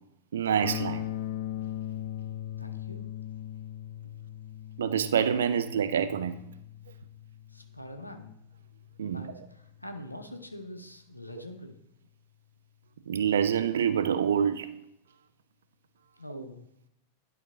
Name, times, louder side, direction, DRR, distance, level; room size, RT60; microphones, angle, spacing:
voice 1, 0.3-1.0 4.8-6.4 9.0-9.3 11.3-11.4 13.1-14.7, right 8 dB, 65° right, 0.4 m, -26 dB
sound 1, 0.6-10.5, left 12 dB, 50° left, 0.5 m, -40 dB
voice 2, 2.6-3.1 7.5-8.4 9.0-11.8 16.2-16.7, left 1 dB, 85° left, 0.7 m, -44 dB
11.0 x 3.7 x 3.6 m
figure-of-eight pair, 90°, 0 cm